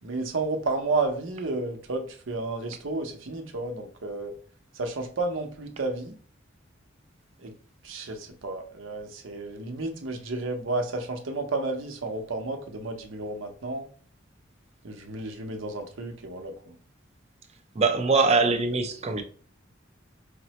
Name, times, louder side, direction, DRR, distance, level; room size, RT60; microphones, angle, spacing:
voice 1, 0.0-4.3 4.7-6.2 7.4-7.5 7.8-13.8 14.8-16.7, right 3 dB, 75° right, 0.7 m, -32 dB
voice 2, 17.8-19.2, right 4 dB, 35° right, 0.5 m, -22 dB
5.0 x 2.1 x 2.8 m
head